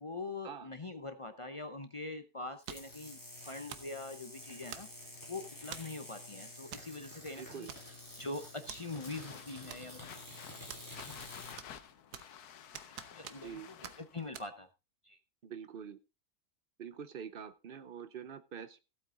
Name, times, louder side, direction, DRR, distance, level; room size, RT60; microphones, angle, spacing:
voice 1, 0.0-4.9 5.3-7.7 8.2-10.1 11.0-11.2 13.1-14.7 15.0-15.2, left 3 dB, 40° left, 8 dB, 0.4 m, -43 dB
sound 1, 2.6-11.6, left 1 dB, 10° left, 4.1 m, -50 dB
sound 2, 2.7-3.0 3.7-4.0 4.7-5.1 5.7-6.0 6.7-6.9 7.2-7.3 7.7-8.2 8.7-8.8 9.7-10.2 10.7-11.3 11.6-12.4 12.7-13.6 13.8-14.0 14.3-14.5, right 9 dB, 90° right, 1.5 m, -47 dB
voice 2, 7.4-7.7 13.3-13.7 15.4-16.0 16.8-18.8, right 7 dB, 45° right, 14 dB, 0.7 m, -45 dB
sound 3, 8.9-14.3, left 9 dB, 80° left, 1.4 m, -52 dB
15.0 x 8.5 x 3.8 m, 0.27 s
omnidirectional pair, 1.6 m